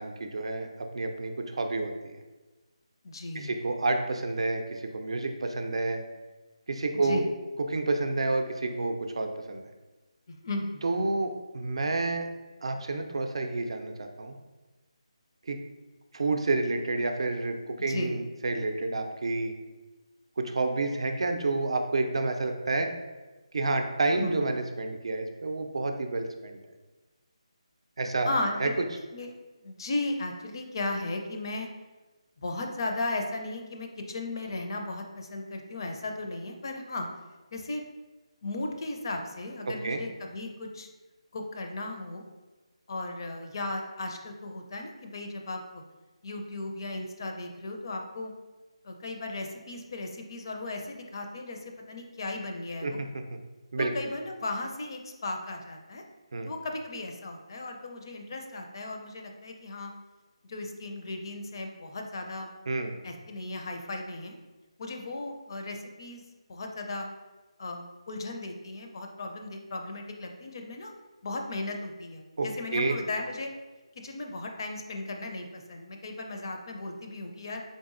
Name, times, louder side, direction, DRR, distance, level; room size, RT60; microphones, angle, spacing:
voice 1, 0.0-2.2 3.3-6.0 6.7-7.2 7.7-9.7 10.8-12.3 12.6-14.3 15.5-15.6 16.1-19.5 20.4-22.9 23.5-26.6 28.0-28.3 28.6-28.7 39.7-40.0 52.8-53.1 53.7-53.9 56.3-56.5 62.7-62.9 72.4-72.9, right 3 dB, 60° right, 5 dB, 0.4 m, -29 dB
voice 2, 3.0-3.5 6.9-7.3 10.3-10.9 17.8-18.2 24.2-24.4 28.2-28.7 29.1-29.3 29.6-31.7 32.4-37.1 37.5-37.8 38.4-40.9 41.3-42.2 42.9-45.8 46.2-48.3 48.8-53.0 53.8-56.0 56.4-59.9 60.5-62.5 63.0-64.4 64.8-66.2 66.5-67.1 67.6-70.9 71.2-73.5 74.0-77.6, left 2 dB, 40° left, 3 dB, 0.4 m, -36 dB
3.9 x 3.4 x 2.5 m, 1.2 s
figure-of-eight pair, 160°, 3 cm